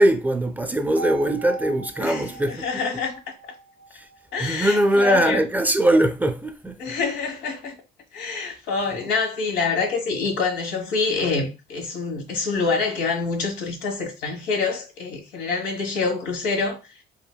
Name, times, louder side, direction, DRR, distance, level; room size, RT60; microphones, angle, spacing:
voice 1, 0.0-2.7 3.9-4.1 4.4-7.0, right 1 dB, 10° right, 0.4 m, -21 dB
sound 1, 1.0-4.9, right 3 dB, 80° right, 0.7 m, -39 dB
voice 2, 2.0-3.2 4.3-5.4 6.8-7.8 8.1-16.8, left 4 dB, 85° left, 1.4 m, -26 dB
4.9 x 2.9 x 2.2 m
cardioid pair, 110°, 17 cm